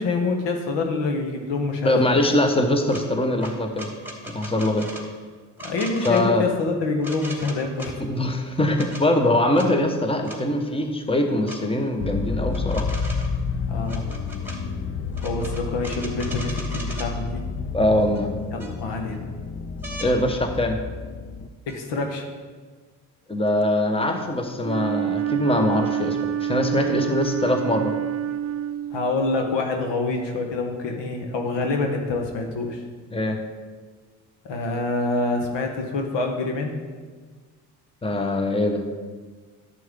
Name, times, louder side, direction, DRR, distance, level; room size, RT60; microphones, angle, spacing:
voice 1, 0.0-2.2 5.6-7.9 13.7-14.0 15.2-17.4 18.5-19.3 21.7-22.2 28.9-32.8 34.4-36.7, left 3 dB, 65° left, 3 dB, 1.4 m, -26 dB
voice 2, 1.8-3.9 4.3-4.9 6.0-6.4 8.0-12.9 17.7-18.3 20.0-20.8 23.3-27.9 33.1-33.4 38.0-38.8, left 1 dB, 10° left, 5 dB, 1.2 m, -22 dB
sound 1, 2.9-3.0 3.4-5.1 5.6-6.2 7.0-7.9 8.6-9.0 9.5-9.7 10.2-10.4 11.5-11.6 12.5-13.4 13.8-14.6 15.1-17.1 18.1-18.2 18.6-19.1 19.8-20.1 21.7-21.8, equal, 5° right, 2.1 m, -38 dB
sound 2, 12.0-21.5, left 5 dB, 30° left, 0.6 m, -30 dB
Wind instrument woodwind instrument, 24.6-29.4, right 10 dB, 30° right, 0.5 m, -27 dB
11.0 x 6.8 x 3.7 m, 1.4 s
hypercardioid pair, 50°, 47 cm